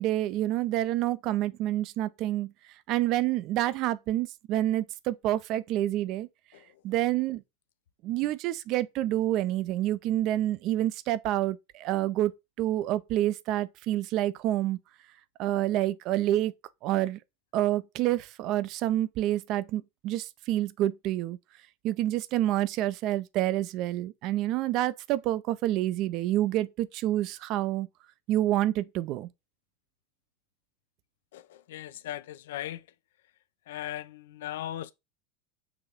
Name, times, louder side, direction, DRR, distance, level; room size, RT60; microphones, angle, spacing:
voice 1, 0.0-2.5 2.9-6.3 6.8-7.4 8.0-12.3 12.6-14.8 15.4-16.5 16.8-17.2 17.5-21.4 21.8-27.9 28.3-29.3, right 14 dB, 50° right, 0.4 m, -28 dB
voice 2, 31.7-32.8 33.7-34.9, left 12 dB, 65° left, 0.3 m, -37 dB
6.1 x 2.7 x 2.8 m
figure-of-eight pair, 80°, 0 cm